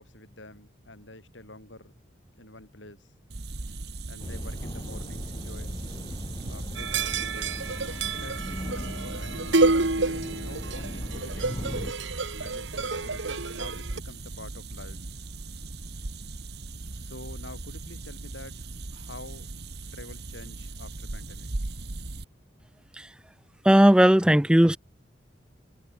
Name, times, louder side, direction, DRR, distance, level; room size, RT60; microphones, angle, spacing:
voice 1, 0.0-2.1 2.4-3.1 4.1-5.8 6.5-11.5 12.4-15.0 16.9-19.5 19.9-21.5, left 2 dB, 90° left, 7.7 m, -47 dB
sound 1, 3.3-22.2, right 2 dB, 60° right, 1.3 m, -39 dB
sound 2, 4.2-11.9, equal, 25° left, 3.1 m, -38 dB
sound 3, 6.8-14.0, right 3 dB, 85° right, 1.8 m, -29 dB
voice 2, 23.7-24.8, equal, 5° right, 0.4 m, -17 dB
head